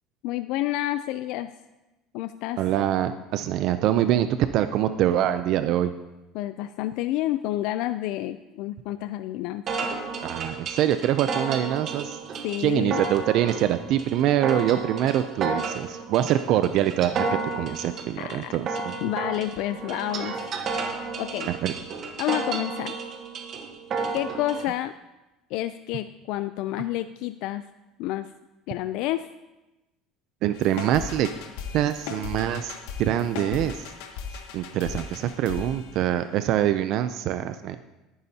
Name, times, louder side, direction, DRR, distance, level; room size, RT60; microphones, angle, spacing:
voice 1, 0.2-1.5 2.1-2.6 6.3-9.6 12.4-13.0 18.2-18.6 19.0-20.3 21.2-21.5 22.2-23.0 24.1-24.9 25.5-27.6 28.0-28.3 28.7-29.3, left 14 dB, 60° left, 11 dB, 0.3 m, -29 dB
voice 2, 2.6-5.9 10.2-12.2 12.6-17.3 17.5-18.9 21.5-21.7 30.4-31.3 31.7-33.9 34.5-37.8, right 11 dB, 50° right, 11 dB, 0.4 m, -24 dB
sound 1, 9.7-24.7, right 4 dB, 35° right, 1.1 m, -32 dB
sound 2, 30.5-36.4, left 6 dB, 80° left, 1.1 m, -37 dB
21.5 x 9.5 x 2.8 m, 1.0 s
cardioid pair, 170°, 0 cm